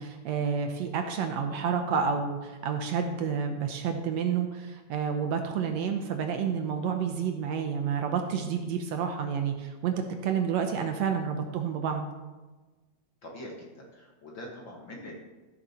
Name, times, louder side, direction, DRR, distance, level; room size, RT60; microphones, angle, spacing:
voice 1, 0.0-9.9 10.2-12.1, right 7 dB, 70° right, 5 dB, 1.8 m, -29 dB
voice 2, 13.2-15.2, left 1 dB, 45° left, -1 dB, 1.7 m, -43 dB
14.5 x 7.3 x 4.3 m, 1.2 s
omnidirectional pair, 3.7 m